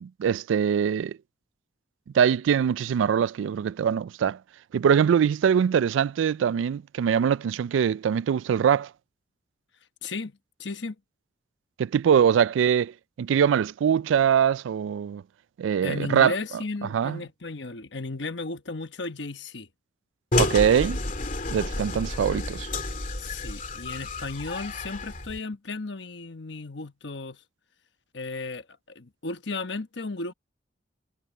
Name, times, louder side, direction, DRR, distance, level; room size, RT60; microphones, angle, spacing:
voice 1, 0.0-1.2 2.1-4.4 4.7-8.9 11.8-15.2 15.6-16.3 16.9-17.2 20.3-21.0 21.5-22.7, right 8 dB, 85° right, 0.3 m, -23 dB
voice 2, 10.0-11.0 15.8-19.7 23.2-27.4 28.1-30.3, left 3 dB, 70° left, 1.2 m, -35 dB
sound 1, 20.3-25.4, left 2 dB, 45° left, 2.4 m, -30 dB
head